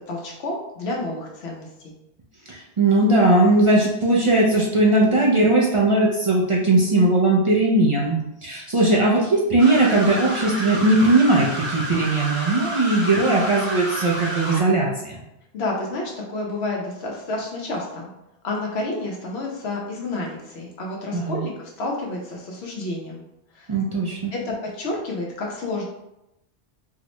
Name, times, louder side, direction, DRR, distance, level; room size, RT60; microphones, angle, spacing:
voice 1, 0.1-1.9 15.5-18.1 18.4-23.2 23.5-23.7 24.3-25.9, left 2 dB, 80° left, -2 dB, 0.9 m, -30 dB
voice 2, 2.5-15.2 21.1-21.4 23.7-24.3, right 2 dB, 50° right, -3 dB, 0.3 m, -19 dB
sound 1, 9.6-14.6, right 1 dB, 75° right, 1.1 m, -30 dB
3.9 x 2.0 x 2.9 m, 0.87 s
omnidirectional pair, 1.1 m